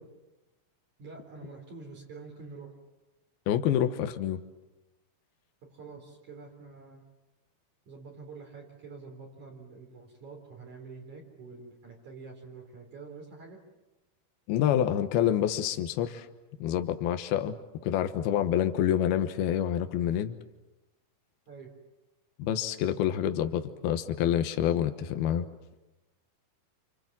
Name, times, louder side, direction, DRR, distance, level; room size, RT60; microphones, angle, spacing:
voice 1, 1.0-2.7 5.7-7.0 7.9-13.6 21.5-21.7, right 4 dB, 50° right, 0 dB, 5.2 m, -47 dB
voice 2, 3.5-4.4 14.5-16.3 16.6-17.6 17.8-20.4 22.4-25.5, left 10 dB, 80° left, 8 dB, 3.1 m, -27 dB
29.0 x 26.5 x 7.5 m, 1.0 s
omnidirectional pair, 4.4 m